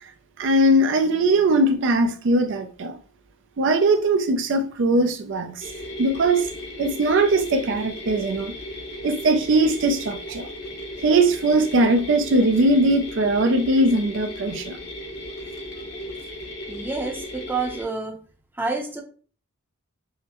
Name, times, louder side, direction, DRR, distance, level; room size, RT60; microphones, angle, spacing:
voice 1, 0.4-3.0 3.6-5.7 6.0-6.5 6.8-8.6 9.0-10.5 11.0-14.8, right 2 dB, 60° right, 0.4 m, -20 dB
sound 1, 5.6-17.8, left 1 dB, 55° left, 1.0 m, -36 dB
voice 2, 16.7-18.2 18.6-19.0, right 3 dB, 10° right, 0.6 m, -28 dB
5.6 x 2.1 x 2.9 m
head